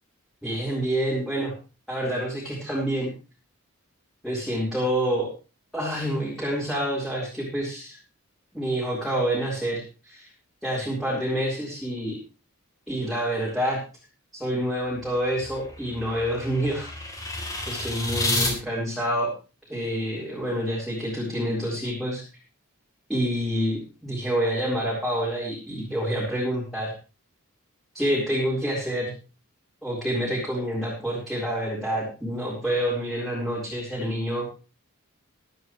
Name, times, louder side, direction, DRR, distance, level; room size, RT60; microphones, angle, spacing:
voice 1, 0.4-1.5 1.9-3.1 4.2-5.3 5.7-8.0 8.5-10.3 10.6-12.1 12.9-13.8 14.3-16.9 17.7-19.3 19.7-22.2 23.1-26.9 27.9-29.1 29.8-34.5, equal, ahead, -6 dB, 4.3 m, -27 dB
sound 1, 14.9-18.5, left 2 dB, 15° left, 3.4 m, -30 dB
22.0 x 9.2 x 3.2 m, 0.33 s
head